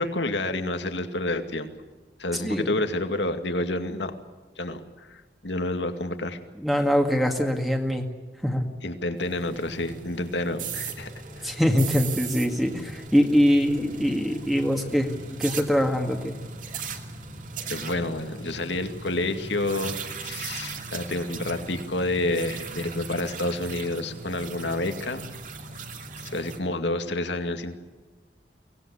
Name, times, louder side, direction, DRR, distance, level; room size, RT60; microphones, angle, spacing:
voice 1, 0.0-1.7 2.2-4.1 4.6-6.4 8.8-11.1 11.4-11.5 17.7-25.3 26.2-27.8, left 2 dB, 80° left, 7 dB, 2.2 m, -29 dB
voice 2, 2.4-2.8 6.6-8.1 8.4-8.6 11.4-15.1 15.4-16.4, equal, ahead, 3 dB, 1.9 m, -23 dB
sound 1, 9.2-26.6, right 4 dB, 45° right, 2.3 m, -38 dB
24.0 x 19.0 x 8.5 m, 1.3 s
head